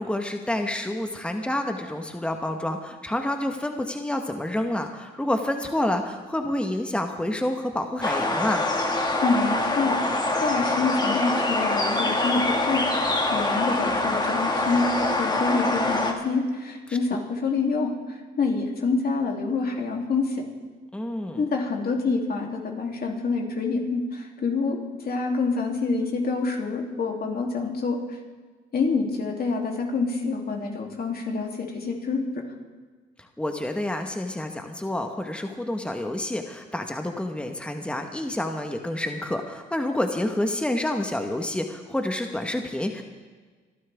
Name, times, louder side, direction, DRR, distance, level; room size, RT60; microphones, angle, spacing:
voice 1, 0.0-8.7 16.9-17.0 20.9-21.4 33.2-43.0, left 1 dB, 5° left, 4 dB, 1.3 m, -28 dB
sound 1, 8.0-16.1, left 2 dB, 20° left, 1.9 m, -25 dB
voice 2, 9.2-20.4 21.4-24.8 25.0-28.0 28.7-32.4, left 4 dB, 50° left, 0 dB, 3.1 m, -27 dB
26.5 x 12.0 x 3.6 m, 1.4 s
cardioid pair, 90°, 20 cm